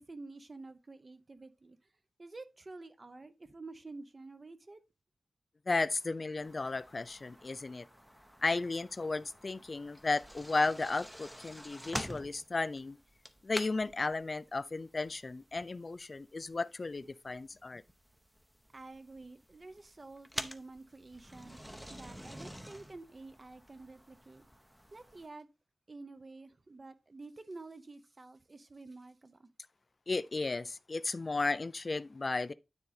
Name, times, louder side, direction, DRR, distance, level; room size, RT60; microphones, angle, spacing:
voice 1, 0.0-1.8 2.2-4.8 18.7-24.5 24.9-25.5 25.9-29.5, right 3 dB, 30° right, 0.8 m, -50 dB
voice 2, 5.7-7.9 8.4-13.0 13.4-17.8 30.1-32.5, left 3 dB, 35° left, 0.4 m, -34 dB
sound 1, 6.4-25.3, equal, 5° right, 0.7 m, -48 dB
9.6 x 3.9 x 4.1 m
wide cardioid pair, 140°, 0 cm